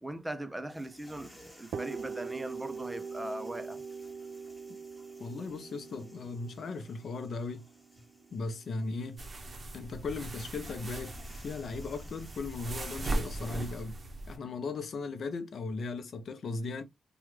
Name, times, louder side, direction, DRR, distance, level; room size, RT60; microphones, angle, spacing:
voice 1, 0.0-3.8, right 1 dB, 10° right, 0.6 m, -40 dB
sound 1, 0.7-13.7, equal, 15° left, 1.7 m, -58 dB
sound 2, 1.7-9.4, right 5 dB, 80° right, 0.4 m, -42 dB
voice 2, 5.2-7.7 8.3-9.2 9.7-14.0 14.3-16.8, left 3 dB, 65° left, 0.6 m, -37 dB
sound 3, 9.2-14.4, right 2 dB, 40° right, 0.8 m, -38 dB
3.0 x 2.3 x 3.1 m
cardioid pair, 70°, 0 cm